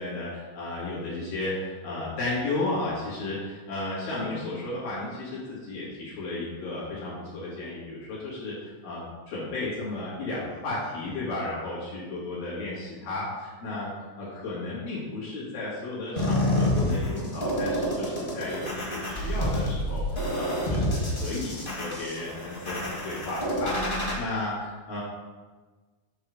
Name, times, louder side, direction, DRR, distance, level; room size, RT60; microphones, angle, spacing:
voice 1, 0.0-20.0 20.3-25.0, left 2 dB, 85° left, -8 dB, 4.0 m, -34 dB
sound 1, 16.2-24.1, equal, 30° left, 0.9 m, -28 dB
8.3 x 3.5 x 6.5 m, 1.3 s
omnidirectional pair, 3.7 m